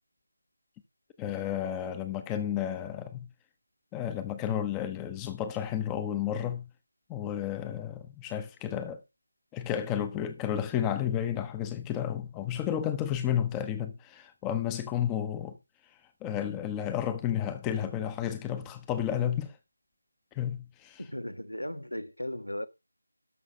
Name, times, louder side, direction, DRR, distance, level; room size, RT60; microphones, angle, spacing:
voice 1, 1.2-3.3 3.9-6.7 7.1-9.0 9.5-15.6 16.2-19.6 20.3-21.0, left 10 dB, 10° left, 0.8 m, -32 dB
voice 2, 21.0-22.7, left 1 dB, 90° left, 1.6 m, -36 dB
12.5 x 5.9 x 5.3 m
figure-of-eight pair, 165°, 0 cm